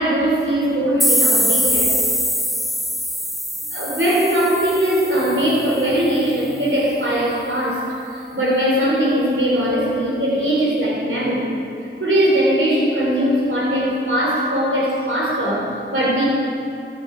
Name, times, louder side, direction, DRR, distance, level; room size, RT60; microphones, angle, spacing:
voice 1, 0.0-2.0 3.7-11.6 12.0-16.2, equal, 85° right, -4 dB, 3.5 m, -20 dB
sound 1, 1.0-5.7, equal, ahead, 1.4 m, -22 dB
14.0 x 13.0 x 5.0 m, 2.5 s
wide cardioid pair, 40°, 20 cm